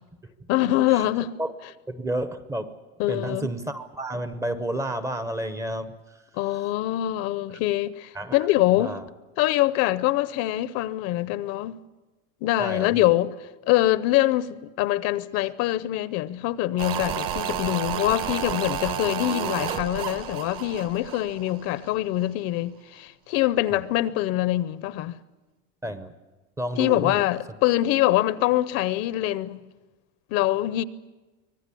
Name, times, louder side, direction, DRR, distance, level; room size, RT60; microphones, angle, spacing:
voice 1, 0.5-1.3 3.0-3.5 6.4-8.9 9.4-11.8 12.4-13.3 13.7-25.2 26.8-29.6 30.3-30.8, left 15 dB, 50° left, 0.7 m, -24 dB
voice 2, 1.9-2.7 3.1-6.2 8.1-8.4 8.7-9.1 12.6-13.1 23.7-23.8 25.8-26.1 26.6-27.3, right 1 dB, 10° right, 0.7 m, -31 dB
sound 1, 16.8-22.0 22.2-22.3, right 9 dB, 45° right, 1.2 m, -31 dB
25.0 x 18.5 x 8.4 m
cardioid pair, 175°, 32 cm